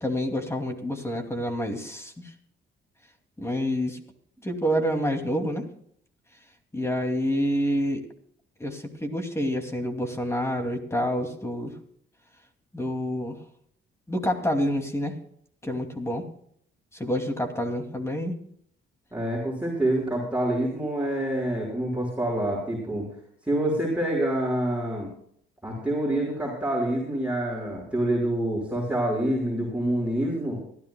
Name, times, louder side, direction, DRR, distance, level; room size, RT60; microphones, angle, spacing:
voice 1, 0.0-2.3 3.4-4.0 4.4-5.6 6.7-8.1 8.6-11.7 12.7-13.4 14.1-15.1 15.6-16.2 16.9-18.4, equal, 15° left, 4 dB, 2.6 m, -28 dB
voice 2, 19.1-23.1 23.4-25.1 25.6-30.6, right 1 dB, 5° right, -4 dB, 5.5 m, -27 dB
24.0 x 13.5 x 2.3 m, 0.65 s
cardioid pair, 90°, 20 cm